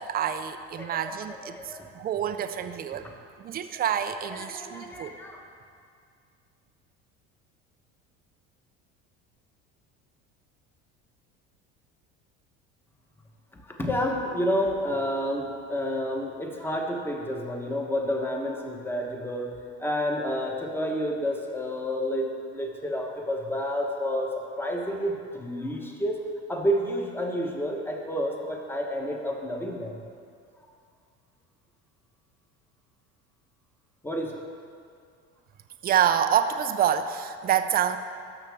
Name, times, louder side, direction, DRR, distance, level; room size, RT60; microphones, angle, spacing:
voice 1, 0.0-3.0 3.4-5.1 35.8-38.0, right 9 dB, 30° right, 9 dB, 0.5 m, -27 dB
voice 2, 0.8-1.9 2.9-3.0 4.3-5.4 13.5-19.5 19.8-24.3 24.6-26.2 26.5-30.0 34.0-34.4, equal, 5° left, 0 dB, 1.2 m, -30 dB
13.5 x 5.8 x 3.5 m, 2.3 s
supercardioid pair, 110°, 30 cm